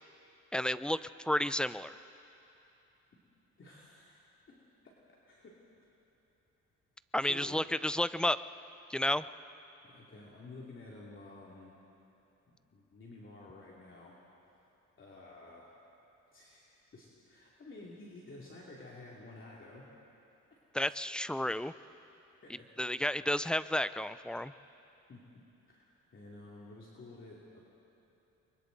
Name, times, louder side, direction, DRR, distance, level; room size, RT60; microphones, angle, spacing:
voice 1, 0.5-2.0 7.1-8.4 8.9-9.3 20.7-21.7 22.8-24.5, left 1 dB, 5° left, 15 dB, 0.4 m, -31 dB
voice 2, 3.6-4.9 5.3-5.6 7.2-7.6 9.8-11.7 12.5-14.1 15.0-15.7 16.3-16.6 16.9-19.9 22.4-22.5 25.1-25.2 25.7-27.6, left 2 dB, 40° left, -5 dB, 2.9 m, -51 dB
29.0 x 23.0 x 4.1 m, 2.9 s
cardioid pair, 90°, 30 cm